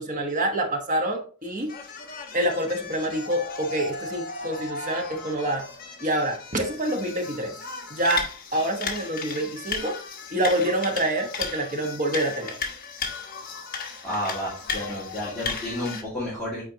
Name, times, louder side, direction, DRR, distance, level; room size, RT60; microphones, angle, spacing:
voice 1, 0.0-1.7 2.3-5.7 6.0-7.5 7.9-10.0 10.3-12.6, right 1 dB, 35° right, 3 dB, 1.1 m, -27 dB
sound 1, 1.6-16.0, left 5 dB, 45° left, 1.2 m, -35 dB
voice 2, 14.0-16.7, left 1 dB, 5° left, -8 dB, 2.2 m, -31 dB
8.7 x 4.3 x 2.8 m, 0.40 s
head